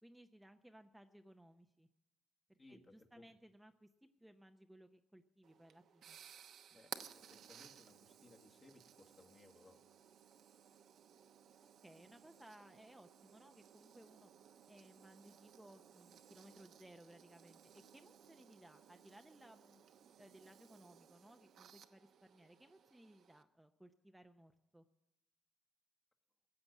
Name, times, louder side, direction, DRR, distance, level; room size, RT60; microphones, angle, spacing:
voice 1, 0.0-1.9 2.5-6.2 11.6-14.3 14.7-19.8 20.2-24.8, right 1 dB, 5° right, 6 dB, 0.7 m, -62 dB
voice 2, 2.6-3.3 6.7-9.8, left 2 dB, 30° left, 3 dB, 1.6 m, -64 dB
sound 1, 5.4-23.4, right 8 dB, 70° right, 0.9 m, -59 dB
15.5 x 7.8 x 9.2 m, 0.92 s
cardioid pair, 90°, 0 cm